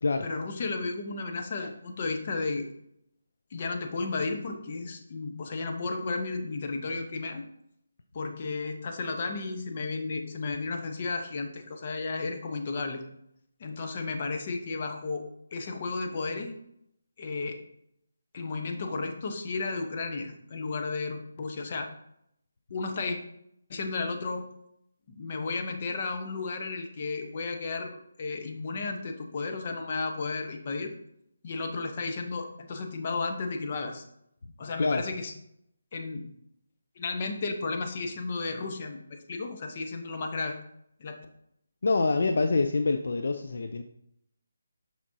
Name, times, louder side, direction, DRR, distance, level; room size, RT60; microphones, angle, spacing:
voice 1, 0.2-2.7 3.5-7.4 8.1-13.0 13.6-15.2 15.5-16.5 17.2-17.6 18.3-21.9 22.7-23.2 23.7-24.4 25.1-30.9 31.4-34.0 34.6-35.3 35.9-36.3 37.0-40.6 41.0-41.2, left 3 dB, 40° left, 4 dB, 0.9 m, -33 dB
voice 2, 41.8-43.8, left 3 dB, 65° left, 7 dB, 0.4 m, -26 dB
6.0 x 5.9 x 2.7 m, 0.75 s
figure-of-eight pair, 155°, 0 cm